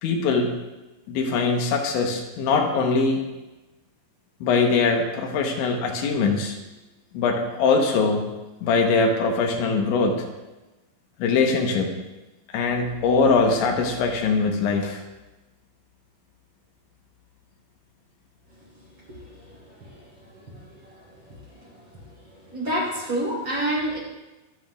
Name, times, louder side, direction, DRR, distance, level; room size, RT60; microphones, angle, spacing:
voice 1, 0.0-0.5 1.1-3.2 4.4-6.6 7.1-8.3 8.6-10.2 11.2-11.9 12.5-15.0, left 4 dB, 85° left, 2 dB, 3.5 m, -22 dB
voice 2, 19.7-20.0 20.3-21.0 21.6-21.8 22.5-24.0, right 1 dB, 25° right, -5 dB, 4.4 m, -29 dB
24.0 x 8.6 x 2.5 m, 1.1 s
omnidirectional pair, 5.3 m